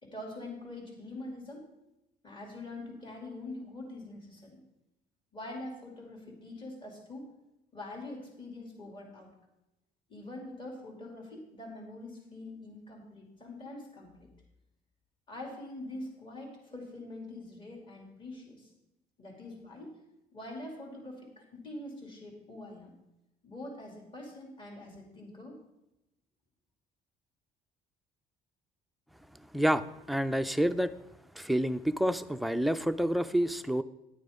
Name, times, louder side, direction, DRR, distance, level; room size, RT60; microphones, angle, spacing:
voice 1, 0.0-1.7 2.2-4.6 5.3-7.3 7.7-9.3 10.1-14.3 15.3-18.7 19.2-20.0 20.3-22.9 23.4-25.6, left 2 dB, 30° left, 1 dB, 2.6 m, -44 dB
voice 2, 29.5-30.9 31.4-33.8, equal, ahead, 10 dB, 0.3 m, -28 dB
10.0 x 9.4 x 3.6 m, 0.90 s
cardioid pair, 110°, 17 cm